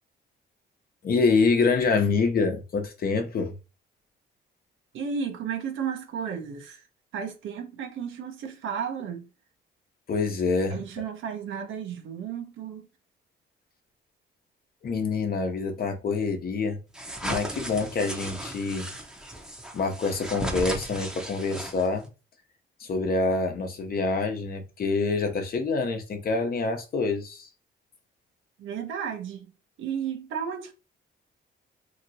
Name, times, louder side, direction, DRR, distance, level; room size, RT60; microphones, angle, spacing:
voice 1, 1.0-3.5 10.1-10.8 14.8-16.8 17.2-18.9 19.7-22.0 22.8-27.5, left 4 dB, 50° left, 0.8 m, -26 dB
voice 2, 4.9-6.9 7.1-9.3 10.7-12.9 28.6-29.5 29.8-30.7, right 7 dB, 80° right, 0.9 m, -33 dB
sound 1, 16.9-22.1, right 1 dB, 5° right, 0.8 m, -36 dB
2.9 x 2.8 x 2.7 m
cardioid pair, 90°, 20 cm